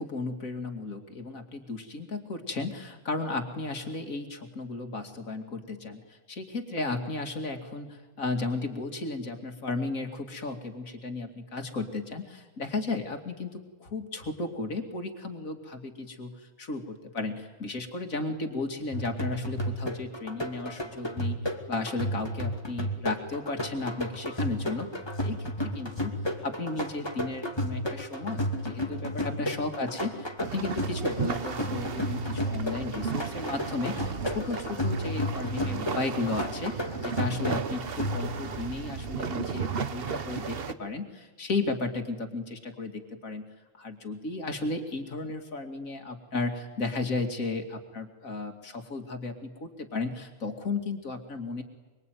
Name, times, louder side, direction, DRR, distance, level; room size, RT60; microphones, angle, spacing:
voice 1, 0.0-21.4 21.7-24.9 25.2-25.4 25.7-26.1 26.4-43.4 43.8-51.6, left 3 dB, 70° left, 5 dB, 2.9 m, -34 dB
sound 1, 18.9-38.6, equal, 20° left, 2.5 m, -33 dB
sound 2, 30.4-40.7, right 6 dB, 45° right, 1.2 m, -35 dB
25.0 x 24.5 x 9.4 m, 1.2 s
omnidirectional pair, 1.5 m